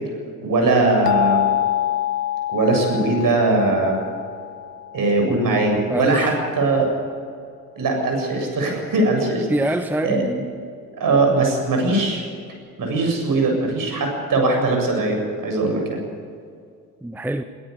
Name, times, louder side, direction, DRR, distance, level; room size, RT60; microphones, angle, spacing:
voice 1, 0.4-1.6 2.5-4.0 4.9-6.9 7.8-9.5 10.0-10.5 11.0-12.2 12.8-16.0, right 2 dB, 45° right, 3 dB, 7.6 m, -20 dB
sound 1, 1.1-5.8, left 12 dB, 90° left, 0.8 m, -26 dB
voice 2, 5.9-6.3 9.5-10.5 17.0-17.4, right 1 dB, 5° right, 9 dB, 1.0 m, -25 dB
22.5 x 14.0 x 8.2 m, 2.2 s
hypercardioid pair, 55°, 45 cm